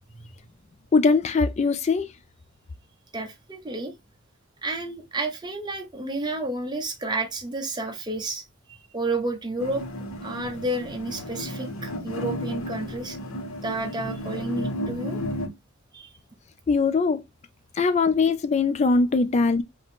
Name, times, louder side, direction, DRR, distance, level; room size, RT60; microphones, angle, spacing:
voice 1, 0.9-2.1 16.7-17.2 17.7-19.6, left 4 dB, 35° left, 0.3 m, -21 dB
voice 2, 3.1-3.9 4.6-9.8 10.2-13.2 13.6-15.2 15.9-16.2, right 2 dB, 20° right, 1.0 m, -31 dB
sound 1, 9.6-15.5, equal, 90° left, 1.4 m, -33 dB
4.8 x 2.9 x 3.5 m
head